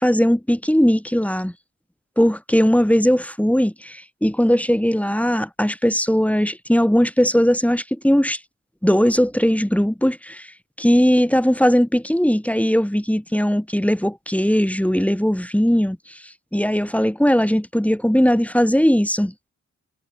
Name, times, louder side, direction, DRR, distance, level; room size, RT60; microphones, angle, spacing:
voice 1, 0.0-1.5 2.2-8.4 8.8-10.5 10.8-16.0 16.5-19.3, equal, 5° left, 5.7 m, -19 dB
cardioid pair, 50°, 32 cm